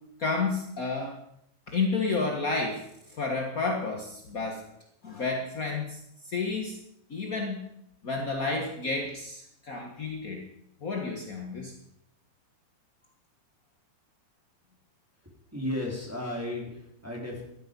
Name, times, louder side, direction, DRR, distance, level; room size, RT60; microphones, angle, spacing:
voice 1, 0.2-1.2 1.7-2.8 3.1-4.6 5.0-6.8 7.1-7.6 8.0-10.4 10.8-11.7, left 3 dB, 55° left, 1 dB, 0.9 m, -31 dB
voice 2, 15.2-17.4, left 1 dB, 5° right, -3 dB, 3.4 m, -34 dB
16.0 x 11.5 x 5.4 m, 0.76 s
omnidirectional pair, 4.0 m